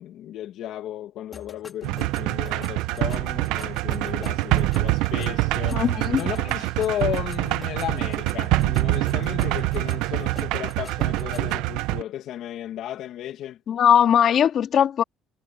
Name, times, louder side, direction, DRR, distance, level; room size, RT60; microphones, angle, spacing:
voice 1, 0.0-5.8 6.1-13.6, left 12 dB, 60° left, 1.9 m, -34 dB
sound 1, 1.3-11.6, left 5 dB, 25° left, 3.9 m, -46 dB
sound 2, 1.8-12.0, right 19 dB, 80° right, 0.8 m, -25 dB
voice 2, 5.7-6.2 13.7-15.0, left 9 dB, 45° left, 2.5 m, -19 dB
cardioid pair, 135°, 0 cm